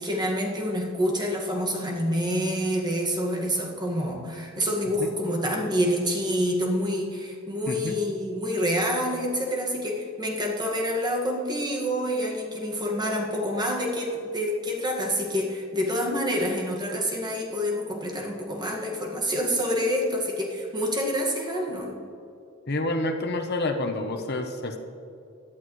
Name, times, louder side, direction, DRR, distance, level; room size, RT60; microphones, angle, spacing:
voice 1, 0.0-22.0, equal, 20° right, -1 dB, 1.8 m, -27 dB
voice 2, 7.7-8.0 22.7-24.8, left 2 dB, 55° left, 5 dB, 1.0 m, -28 dB
16.5 x 12.0 x 3.2 m, 2.6 s
head